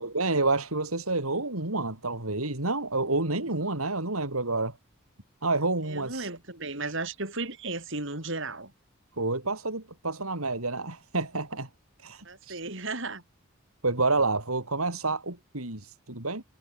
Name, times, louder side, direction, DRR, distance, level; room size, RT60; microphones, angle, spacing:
voice 1, 0.0-4.8 5.4-6.3 9.2-11.7 12.0-12.6 13.8-16.4, right 3 dB, 85° right, 4.4 m, -29 dB
voice 2, 5.8-8.7 12.2-13.2, right 3 dB, 60° right, 6.6 m, -35 dB
head